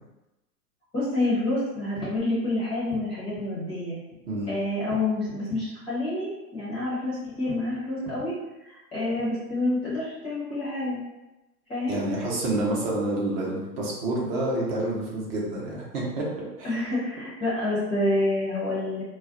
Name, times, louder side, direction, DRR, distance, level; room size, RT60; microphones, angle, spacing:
voice 1, 0.9-4.0 4.5-8.3 8.6-11.0 11.7-12.0 16.6-19.0, left 2 dB, 10° left, -10 dB, 0.6 m, -28 dB
voice 2, 11.9-16.3 16.6-16.7, right 1 dB, 35° right, -4 dB, 0.8 m, -28 dB
2.3 x 2.1 x 3.7 m, 0.99 s
hypercardioid pair, 135°, 50 cm